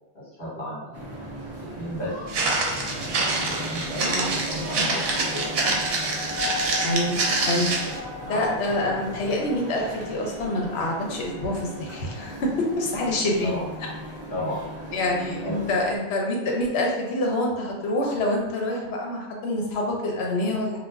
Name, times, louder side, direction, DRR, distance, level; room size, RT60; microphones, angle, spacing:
voice 1, 0.1-0.9 1.7-2.2 2.9-3.1 3.5-4.9 5.3-5.5 7.8-7.9 8.3-8.6 13.4-13.6 14.3-14.7 15.4-15.5, equal, 50° left, -7 dB, 1.3 m, -34 dB
sound 1, 0.9-16.0, equal, 20° right, 0.4 m, -36 dB
Walk footsteps, 2.3-8.0, right 3 dB, 65° right, 0.8 m, -26 dB
voice 2, 4.0-4.3 6.8-7.2 7.4-7.7 8.3-13.5 14.9-20.8, left 1 dB, 70° left, 0 dB, 0.9 m, -26 dB
2.4 x 2.1 x 3.3 m, 1.1 s
omnidirectional pair, 1.2 m